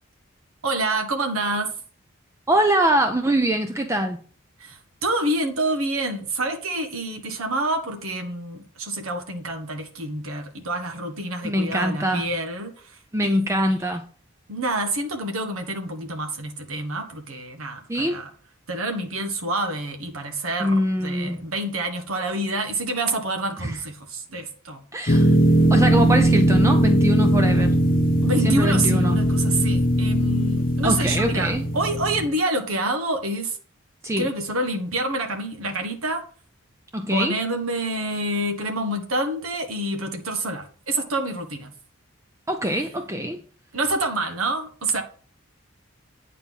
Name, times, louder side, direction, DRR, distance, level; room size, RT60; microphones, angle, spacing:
voice 1, 0.6-1.7 4.6-12.7 13.2-13.7 14.5-18.2 18.7-20.8 21.0-24.8 28.2-33.6 34.2-36.2 37.1-41.7 43.7-45.0, right 2 dB, 90° right, 1.3 m, -27 dB
voice 2, 2.5-4.2 11.4-12.3 13.1-14.0 17.9-18.2 20.6-21.4 23.6-23.8 24.9-25.3 25.7-27.8 28.4-29.2 30.8-31.6 34.0-34.3 36.9-37.3 42.5-43.4, equal, 15° right, 0.5 m, -23 dB
sound 1, 25.1-32.3, right 1 dB, 40° left, 1.0 m, -19 dB
9.2 x 4.1 x 5.4 m
head